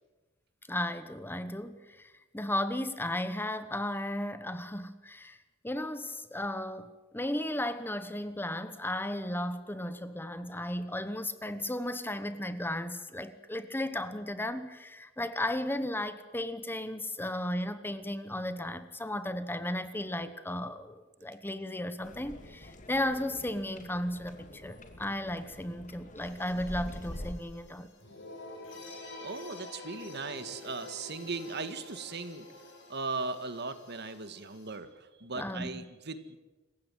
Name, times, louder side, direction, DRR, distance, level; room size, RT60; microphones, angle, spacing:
voice 1, 0.7-5.4 5.6-27.9 35.3-35.8, left 1 dB, 10° left, 12 dB, 1.1 m, -35 dB
sound 1, 22.0-27.3, left 1 dB, 40° left, 2.4 m, -46 dB
sound 2, 26.2-34.8, left 2 dB, 65° left, 6.6 m, -48 dB
voice 2, 29.2-32.5 32.9-36.4, right 3 dB, 55° right, 11 dB, 1.8 m, -38 dB
27.0 x 15.5 x 9.2 m, 1.2 s
head